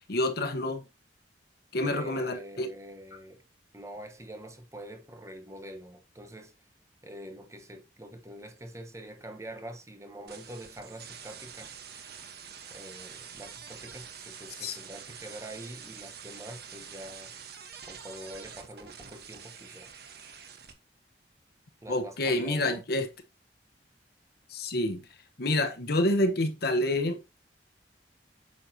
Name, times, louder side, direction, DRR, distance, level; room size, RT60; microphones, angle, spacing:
voice 1, 0.1-0.8 1.7-2.7 14.6-14.8 21.9-23.1 24.5-25.0 25.4-27.4, left 1 dB, 65° left, 1.2 m, -28 dB
voice 2, 1.8-3.4 3.7-6.5 7.0-11.8 12.7-17.3 17.8-19.9 21.8-22.8, right 1 dB, 15° right, 1.1 m, -45 dB
sound 1, 10.3-20.7, right 7 dB, 65° right, 1.2 m, -46 dB
8.8 x 6.6 x 2.8 m
head